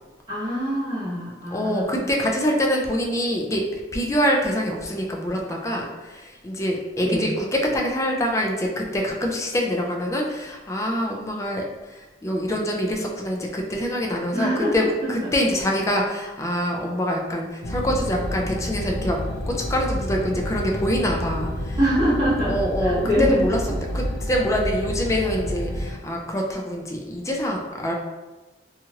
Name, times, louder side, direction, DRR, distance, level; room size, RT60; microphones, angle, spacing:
voice 1, 0.3-2.1 7.0-7.3 14.3-14.7 15.0-15.3 21.8-23.4, equal, 25° right, -12 dB, 1.2 m, -24 dB
voice 2, 1.5-7.4 7.7-11.6 11.9-19.2 19.5-21.8 22.5-23.6 23.9-27.9, equal, 15° left, 0 dB, 0.4 m, -25 dB
sound 1, 17.6-25.9, equal, 90° left, 0.5 m, -29 dB
2.9 x 2.4 x 2.8 m, 1.2 s
head